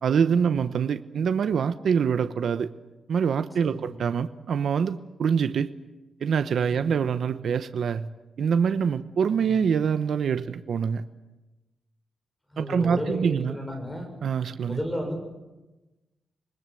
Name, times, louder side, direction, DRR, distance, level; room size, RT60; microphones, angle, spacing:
voice 1, 0.0-2.7 3.1-5.7 6.2-8.1 8.4-11.0 12.6-13.6 14.2-14.8, right 7 dB, 70° right, 0.9 m, -25 dB
voice 2, 3.6-4.0 6.7-7.1 9.4-9.8 12.5-14.1 14.6-15.2, equal, 10° left, 6.6 m, -34 dB
27.0 x 20.5 x 7.8 m
wide cardioid pair, 135°, 0 cm